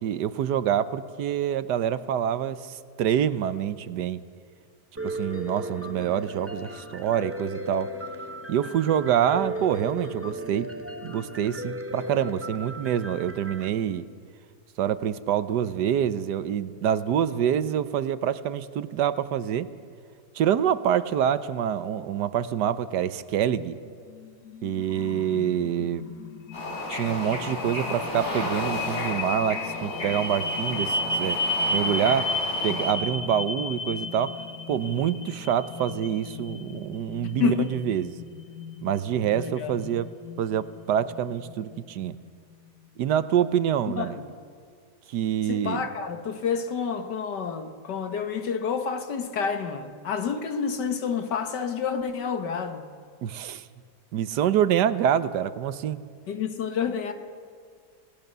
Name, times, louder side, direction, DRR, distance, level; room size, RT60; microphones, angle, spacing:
voice 1, 0.0-4.2 5.0-7.9 8.5-10.7 11.0-14.0 14.8-19.7 20.3-23.8 24.6-26.0 26.9-31.4 31.7-32.3 32.6-34.4 34.7-38.1 38.8-40.1 40.4-42.2 43.0-44.2 45.1-45.9 53.2-53.6 54.1-56.1, right 9 dB, 80° right, 14 dB, 1.4 m, -26 dB
Piano, 5.0-13.7, right 1 dB, 10° right, 0.9 m, -36 dB
sound 1, 24.1-42.2, left 2 dB, 70° left, 1.7 m, -34 dB
Bird / Ocean, 26.5-32.9, left 1 dB, 40° left, 5.0 m, -33 dB
voice 2, 37.2-37.7 39.4-39.8 44.0-44.3 45.4-52.9 56.3-57.1, left 6 dB, 85° left, 7 dB, 2.0 m, -29 dB
27.0 x 18.0 x 6.8 m, 2.2 s
omnidirectional pair, 1.8 m